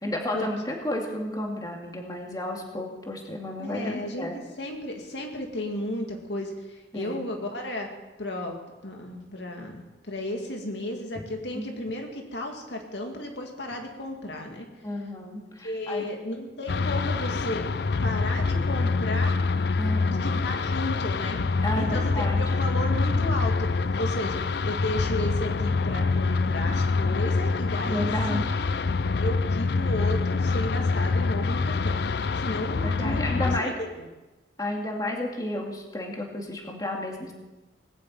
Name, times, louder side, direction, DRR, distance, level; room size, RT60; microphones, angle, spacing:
voice 1, 0.0-4.3 6.9-7.2 11.5-11.7 14.8-16.1 19.8-20.4 21.6-22.4 27.8-28.4 32.8-33.7 34.6-37.3, left 1 dB, 20° left, 0 dB, 2.3 m, -32 dB
voice 2, 3.6-7.9 8.2-8.5 8.8-14.7 15.6-17.7 18.0-19.4 20.2-21.4 21.8-28.7 29.2-34.1, left 1 dB, 80° left, 2 dB, 2.3 m, -34 dB
sound 1, 16.7-33.6, left 4 dB, 65° left, 0.5 m, -25 dB
19.5 x 7.4 x 8.8 m, 1.1 s
head